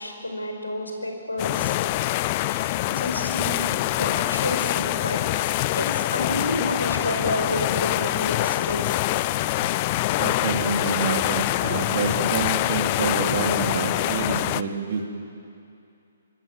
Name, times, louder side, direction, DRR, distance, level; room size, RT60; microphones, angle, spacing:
voice 1, 0.0-1.7 2.2-3.7 3.9-8.9, left 1 dB, 75° left, 3 dB, 5.0 m, -30 dB
sound 1, 1.4-14.6, left 16 dB, 30° left, 0.5 m, -25 dB
voice 2, 10.2-15.2, right 5 dB, 45° right, 3 dB, 3.0 m, -28 dB
25.5 x 25.0 x 7.6 m, 2.6 s
figure-of-eight pair, 130°, 0 cm